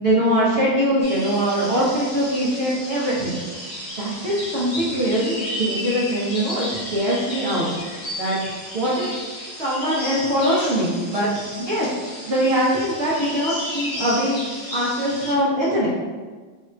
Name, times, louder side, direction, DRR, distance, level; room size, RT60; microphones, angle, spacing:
voice 1, 0.0-3.4 4.0-7.7 8.2-8.4 8.7-9.1 9.6-11.3 11.6-11.9 12.3-14.4 14.7-15.9, equal, 80° right, -7 dB, 0.5 m, -22 dB
sound 1, 1.0-15.3, left 1 dB, 45° left, 1.2 m, -33 dB
3.4 x 2.5 x 4.3 m, 1.4 s
omnidirectional pair, 2.2 m